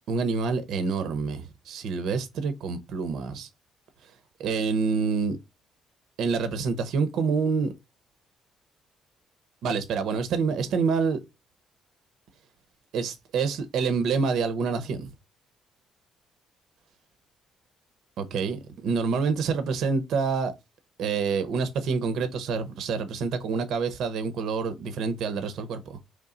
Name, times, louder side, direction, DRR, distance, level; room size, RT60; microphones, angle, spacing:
voice 1, 0.1-3.5 4.4-5.4 6.2-7.7 9.6-11.2 12.9-15.1 18.2-20.5 21.0-26.0, right 5 dB, 65° right, 0.7 m, -27 dB
3.8 x 3.2 x 4.2 m
cardioid pair, 160°, 0 cm